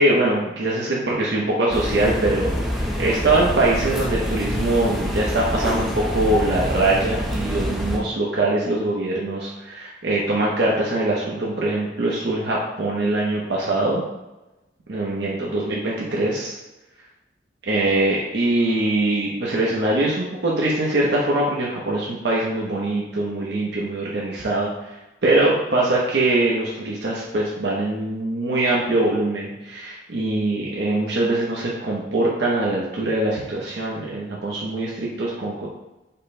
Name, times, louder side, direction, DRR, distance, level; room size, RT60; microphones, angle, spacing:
voice 1, 0.0-2.5 3.0-14.0 14.9-16.6 17.7-24.9 25.2-35.7, right 2 dB, 65° right, -4 dB, 0.7 m, -22 dB
sound 1, 1.7-8.0, equal, ahead, 0.6 m, -26 dB
5.3 x 2.1 x 4.2 m, 1.0 s
head